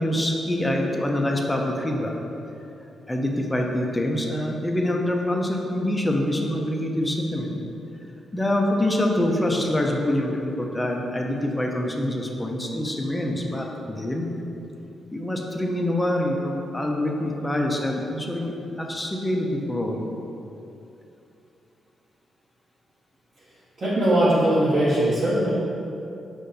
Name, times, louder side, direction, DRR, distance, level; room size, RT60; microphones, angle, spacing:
voice 1, 0.0-2.1 3.1-7.6 8.3-14.3 15.1-20.0, left 1 dB, 15° left, 1 dB, 0.7 m, -25 dB
voice 2, 23.8-25.5, right 1 dB, 55° right, -11 dB, 1.0 m, -20 dB
5.2 x 2.6 x 3.9 m, 2.8 s
hypercardioid pair, 40°, 0 cm